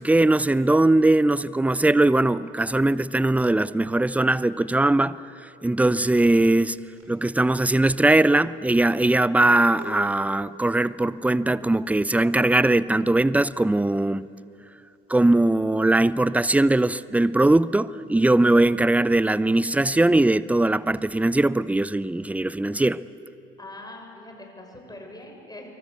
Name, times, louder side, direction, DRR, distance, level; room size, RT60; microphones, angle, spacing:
voice 1, 0.0-5.2 5.6-14.3 15.1-23.0, right 2 dB, 5° right, 0.6 m, -20 dB
sound 1, 6.4-16.6 16.9-21.1, right 3 dB, 45° right, 7.2 m, -47 dB
voice 2, 23.6-25.8, left 1 dB, 10° left, 6.6 m, -42 dB
27.0 x 23.5 x 8.2 m
figure-of-eight pair, 55°, 31 cm